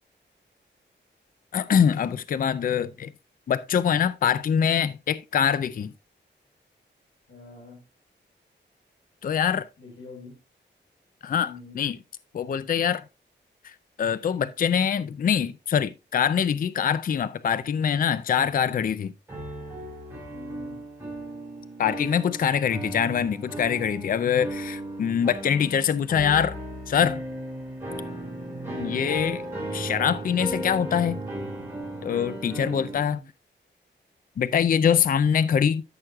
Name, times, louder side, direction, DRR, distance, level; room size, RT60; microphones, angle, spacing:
voice 1, 1.5-3.1 3.5-5.9 9.2-9.7 11.2-12.0 12.3-13.0 13.6-19.1 21.8-26.6 26.9-27.2 28.8-29.4 29.7-31.2 32.0-33.2 34.4-35.8, left 8 dB, 45° left, 0.4 m, -24 dB
voice 2, 7.3-7.8 9.8-10.4 11.4-11.8 20.3-20.8 28.5-28.9 32.8-33.3, left 3 dB, 90° left, 5.4 m, -45 dB
sound 1, 19.3-33.0, right 1 dB, 15° right, 4.0 m, -36 dB
13.5 x 6.3 x 2.3 m
wide cardioid pair, 165°, 19 cm